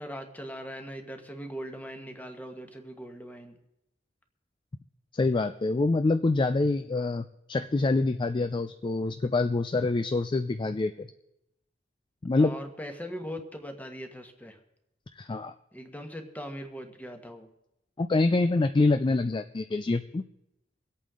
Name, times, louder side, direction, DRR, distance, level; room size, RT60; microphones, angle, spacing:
voice 1, 0.0-3.6 12.3-14.6 15.7-17.5, equal, 10° left, 5 dB, 1.4 m, -40 dB
voice 2, 5.1-11.1 12.2-12.5 15.2-15.5 18.0-20.2, left 3 dB, 25° left, 10 dB, 0.4 m, -26 dB
24.5 x 8.5 x 3.7 m, 0.84 s
head